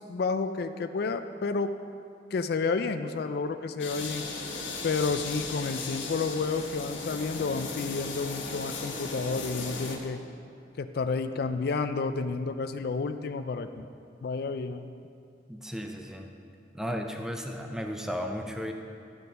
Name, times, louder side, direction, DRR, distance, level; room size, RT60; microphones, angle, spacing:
voice 1, 0.0-1.7 2.3-4.3 4.8-10.2 10.8-13.9 14.2-14.9, left 4 dB, 55° left, 9 dB, 0.4 m, -30 dB
sound 1, 3.8-10.0, left 3 dB, 85° left, 1.4 m, -36 dB
voice 2, 15.5-16.3 16.7-18.7, equal, 5° right, 3 dB, 0.5 m, -34 dB
12.0 x 6.7 x 5.4 m, 2.4 s
head